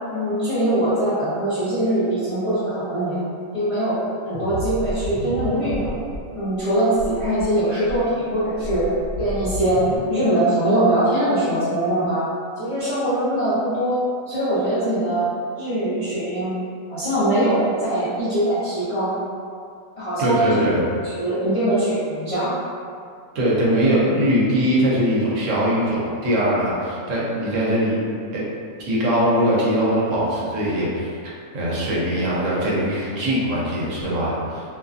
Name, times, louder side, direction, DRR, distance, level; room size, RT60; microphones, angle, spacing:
voice 1, 0.1-3.2 3.5-5.9 6.3-8.8 9.2-9.8 10.1-12.2 12.6-14.0 14.3-15.2 15.6-16.5 16.9-19.1 20.0-20.5 21.0-22.5, right 1 dB, 45° left, -13 dB, 0.4 m, -22 dB
sound 1, 4.3-6.2 6.5-6.6 6.9-7.4 7.8-10.0, equal, 90° right, 1.0 m, -31 dB
voice 2, 20.2-20.9 23.3-27.9 28.3-28.4 28.9-31.1 31.5-34.6, equal, 70° right, -7 dB, 1.0 m, -21 dB
2.6 x 2.5 x 2.4 m, 2.3 s
omnidirectional pair, 1.5 m